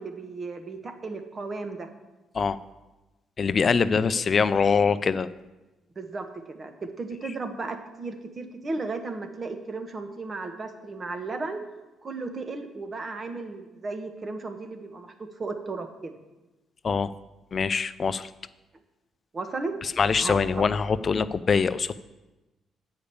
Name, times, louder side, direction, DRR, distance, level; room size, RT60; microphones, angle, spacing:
voice 1, 0.0-1.9 6.0-11.6 12.0-16.1 19.3-19.7 20.2-20.6, right 3 dB, 35° right, 7 dB, 1.1 m, -35 dB
voice 2, 3.4-5.3 16.8-17.1 17.5-18.3 19.8-22.0, left 5 dB, 40° left, 15 dB, 0.4 m, -23 dB
8.5 x 4.9 x 7.0 m, 1.1 s
cardioid pair, 90°, 0 cm